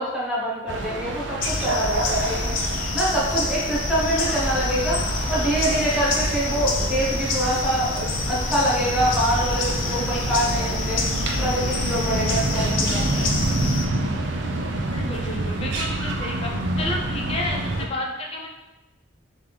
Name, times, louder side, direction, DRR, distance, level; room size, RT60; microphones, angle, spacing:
voice 1, 0.0-2.5 2.9-5.0 5.3-11.0 11.4-13.2, right 1 dB, 5° right, -8 dB, 1.0 m, -25 dB
sound 1, 0.7-17.9, right 2 dB, 65° right, 0.5 m, -28 dB
sound 2, 1.4-13.9, left 3 dB, 85° left, 0.6 m, -27 dB
voice 2, 9.9-11.0 14.9-16.5 16.8-18.5, left 1 dB, 30° left, -1 dB, 0.5 m, -32 dB
3.6 x 3.1 x 3.3 m, 1.0 s
head